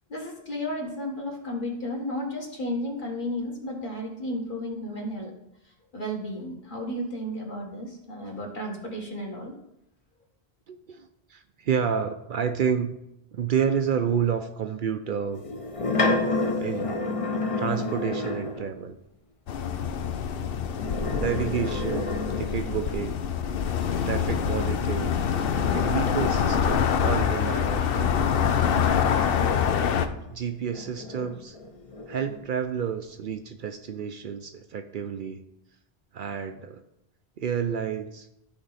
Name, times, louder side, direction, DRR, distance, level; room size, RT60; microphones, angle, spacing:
voice 1, 0.1-5.3 5.9-9.5, left 1 dB, 55° left, -1 dB, 1.9 m, -33 dB
voice 2, 10.7-12.9 13.3-15.4 16.6-17.0 17.6-19.0 21.1-22.1 22.4-23.2 24.0-25.2 25.7-28.7 30.3-31.6 32.1-35.4 36.1-36.8 37.4-38.3, right 7 dB, 60° right, 8 dB, 0.6 m, -30 dB
sound 1, 15.4-18.7 20.6-23.0 24.9-30.1 30.7-32.4, left 2 dB, 35° left, 0.8 m, -31 dB
sound 2, 19.5-30.1, left 7 dB, 70° left, 0.8 m, -25 dB
13.0 x 4.4 x 4.1 m, 0.83 s
omnidirectional pair, 1.0 m